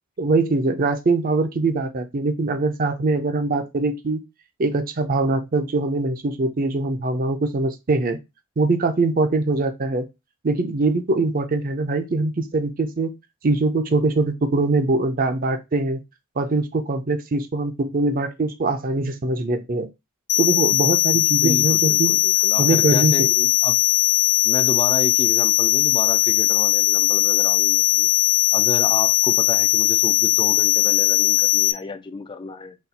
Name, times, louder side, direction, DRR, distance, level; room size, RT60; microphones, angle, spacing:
voice 1, 0.2-4.2 4.6-8.2 8.6-10.0 10.4-13.1 13.4-16.0 16.4-19.9 20.4-22.1 22.6-23.5, right 3 dB, 40° right, 0.5 m, -22 dB
sound 1, 20.3-31.7, left 18 dB, 75° left, 0.5 m, -19 dB
voice 2, 21.1-23.2 23.6-23.8 24.4-28.1 28.5-32.8, left 3 dB, 20° left, 0.3 m, -31 dB
4.2 x 2.3 x 4.0 m
head